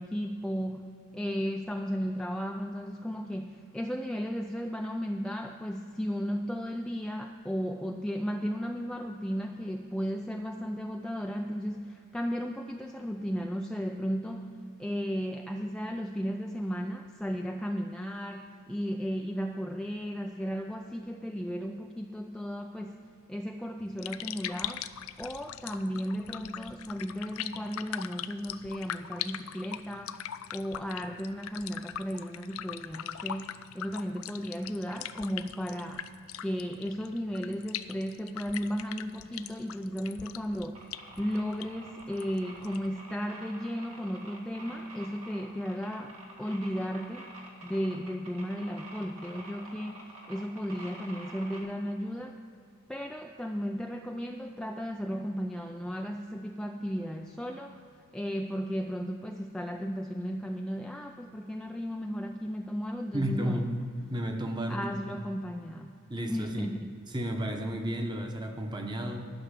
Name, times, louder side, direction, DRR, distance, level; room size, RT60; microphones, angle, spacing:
voice 1, 0.0-24.8 25.2-30.1 30.5-36.1 36.4-40.8 41.2-47.3 47.6-52.4 52.9-57.8 58.1-63.7 64.7-65.9 66.3-67.0, equal, 5° left, 2 dB, 0.3 m, -35 dB
sound 1, 23.8-43.0, left 10 dB, 70° left, 0.4 m, -41 dB
sound 2, 40.8-51.6, right 2 dB, 85° right, 2.0 m, -48 dB
voice 2, 63.1-63.8 64.1-64.9 66.1-66.7 67.1-69.3, equal, 20° right, 4 dB, 1.0 m, -32 dB
12.0 x 6.1 x 8.1 m, 2.5 s
head